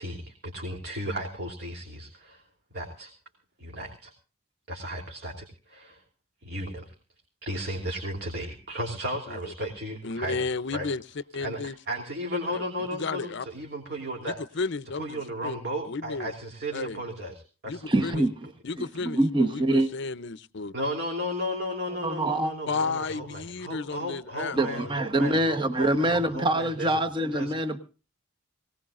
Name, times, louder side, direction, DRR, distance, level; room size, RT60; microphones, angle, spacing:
voice 1, 0.0-2.4 2.7-3.1 3.6-4.1 4.7-6.0 6.4-6.9 7.4-10.9 11.4-14.4 15.0-17.8 18.1-18.2 20.7-27.0 27.3-27.5, equal, 50° right, 3.1 m, -34 dB
voice 2, 10.0-11.0 11.3-11.7 12.5-12.6 12.9-13.5 14.2-15.6 15.8-16.3 16.7-17.0 17.7-18.3 18.6-20.7 22.7-24.9, left 4 dB, 55° left, 0.6 m, -33 dB
voice 3, 17.9-18.3 19.0-19.9 22.0-22.5 24.5-27.8, right 1 dB, 20° right, 1.1 m, -24 dB
22.5 x 18.5 x 2.5 m
head